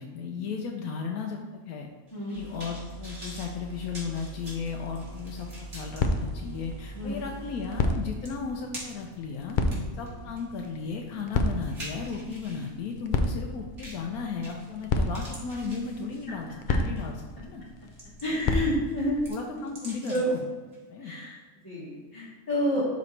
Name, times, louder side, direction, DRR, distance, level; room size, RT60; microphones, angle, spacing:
voice 1, 0.0-1.9 2.3-9.6 9.9-16.5 16.7-17.6 18.3-18.5 19.3-20.4 20.9-21.1 22.7-22.8, left 5 dB, 80° left, 1 dB, 1.2 m, -35 dB
sound 1, 2.1-6.0 6.5-6.6 7.8-7.9 8.2-9.1 9.6-12.7 13.8-14.1 14.4-14.8 15.1-16.4 17.0-17.2 17.7-18.5 18.9-20.4 20.7-20.8, right 1 dB, 50° right, 2.3 m, -45 dB
sound 2, 2.4-8.0, right 3 dB, 90° right, 1.2 m, -43 dB
sound 3, 4.8-19.3, left 2 dB, 60° left, 0.5 m, -32 dB
voice 2, 9.7-10.0 18.2-19.3 20.1-20.2 21.0-21.4 21.6-22.8, equal, 15° left, -10 dB, 1.6 m, -29 dB
12.0 x 4.0 x 3.2 m, 1.4 s
omnidirectional pair, 1.5 m